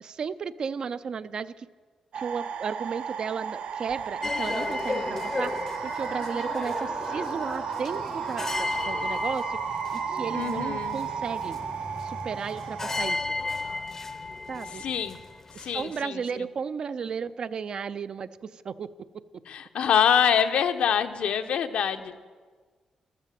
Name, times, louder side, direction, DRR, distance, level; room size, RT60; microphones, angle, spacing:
voice 1, 0.0-1.7 2.1-11.7 12.0-13.3 14.5-14.8 15.5-18.9, right 6 dB, 45° right, 13 dB, 0.4 m, -34 dB
sound 1, 2.1-13.2, right 7 dB, 75° right, 0.8 m, -34 dB
sound 2, 4.2-16.0, left 3 dB, 20° left, 0.6 m, -34 dB
voice 2, 10.3-11.0 14.7-15.2 15.6-16.4 19.5-22.2, left 8 dB, 70° left, 8 dB, 0.9 m, -25 dB
13.5 x 12.5 x 7.5 m, 1.5 s
wide cardioid pair, 180°, 2 cm